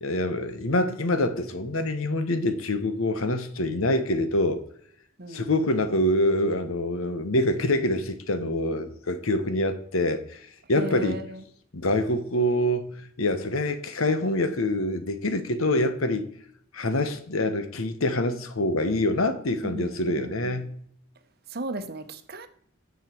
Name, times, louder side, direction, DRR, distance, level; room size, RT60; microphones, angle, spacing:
voice 1, 0.0-4.6 5.3-10.4 10.7-11.2 11.7-16.3 16.7-20.8, left 1 dB, 75° left, 1.1 m, -25 dB
voice 2, 5.2-5.8 10.7-11.4 19.6-20.7 21.5-22.5, right 1 dB, 45° right, 0.9 m, -36 dB
9.9 x 7.4 x 4.5 m
head